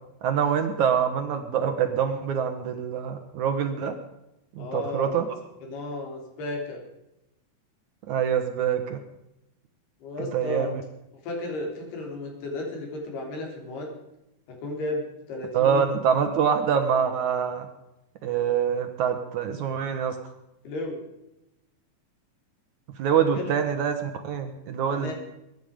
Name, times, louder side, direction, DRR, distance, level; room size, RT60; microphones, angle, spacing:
voice 1, 0.2-4.0 4.6-5.3 8.1-9.0 10.3-10.8 15.5-17.7 18.2-20.2 23.0-25.1, right 7 dB, 65° right, 7 dB, 2.1 m, -25 dB
voice 2, 4.6-5.4 5.6-6.8 10.0-10.7 11.2-13.9 14.5-15.9 20.6-21.0 23.2-23.5 24.9-25.1, left 2 dB, 90° left, 1 dB, 5.6 m, -34 dB
22.0 x 11.0 x 5.2 m, 0.91 s
omnidirectional pair, 4.4 m